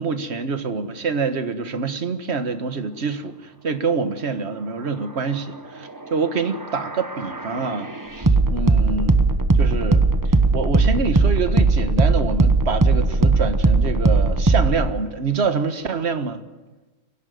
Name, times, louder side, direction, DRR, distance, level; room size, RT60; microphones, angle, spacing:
voice 1, 0.0-9.2 9.6-16.4, right 5 dB, 35° right, 8 dB, 1.5 m, -26 dB
sound 1, 6.2-14.9, right 3 dB, 15° right, 0.6 m, -19 dB
24.0 x 17.0 x 9.3 m, 1.2 s
omnidirectional pair, 2.3 m